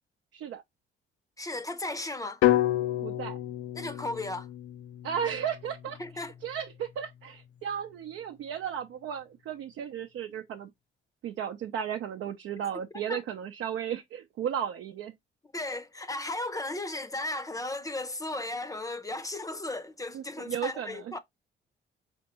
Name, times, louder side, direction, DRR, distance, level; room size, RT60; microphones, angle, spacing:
voice 1, 1.4-2.4 3.7-4.5 6.0-6.3 13.1-13.2 15.5-21.2, left 2 dB, 15° left, 0.6 m, -35 dB
sound 1, 2.4-6.5, left 14 dB, 80° left, 0.4 m, -29 dB
voice 2, 3.0-3.4 5.0-6.0 6.4-10.7 11.2-15.1 20.1-21.2, right 8 dB, 75° right, 0.6 m, -34 dB
4.4 x 3.4 x 2.9 m
cardioid pair, 90°, 20 cm